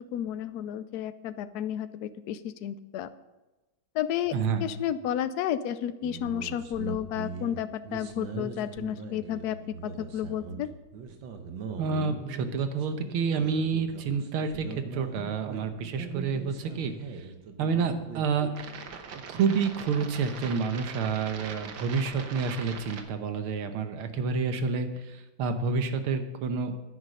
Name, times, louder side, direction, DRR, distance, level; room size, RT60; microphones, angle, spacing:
voice 1, 0.1-3.1 3.9-4.3 4.6-9.6 9.8-10.7, left 10 dB, 75° left, 13 dB, 0.9 m, -32 dB
voice 2, 4.3-4.7 11.8-14.7 14.9-16.9 17.6-18.5 19.1-26.8, right 5 dB, 85° right, 8 dB, 1.9 m, -29 dB
sound 1, 6.0-23.0, right 5 dB, 65° right, 1.7 m, -41 dB
10.5 x 9.9 x 5.5 m, 1.1 s
omnidirectional pair, 2.3 m